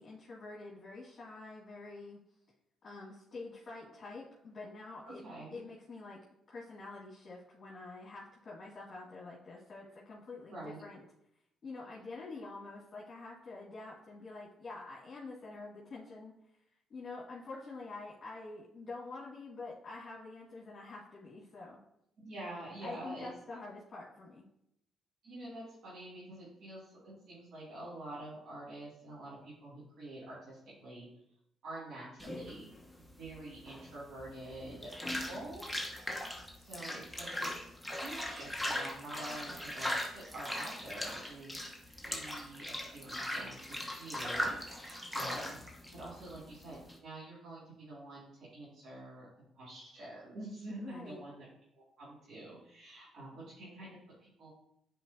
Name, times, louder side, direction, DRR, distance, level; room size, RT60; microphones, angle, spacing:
voice 1, 0.0-2.2 2.8-5.2 5.5-6.2 6.5-11.0 11.6-16.3 16.9-21.8 22.8-24.5 50.7-51.2, left 3 dB, 45° left, -7 dB, 2.0 m, -47 dB
voice 2, 5.0-5.5 10.5-10.8 22.2-23.3 25.2-31.1 31.6-35.7 36.6-39.9 40.1-41.6 42.0-45.6 45.9-49.3 49.5-51.4 51.8-54.5, right 1 dB, 70° right, -9 dB, 2.5 m, -47 dB
sound 1, 32.2-47.0, left 1 dB, ahead, 1.1 m, -39 dB
9.8 x 4.6 x 2.8 m, 0.78 s
cardioid pair, 90°, 0 cm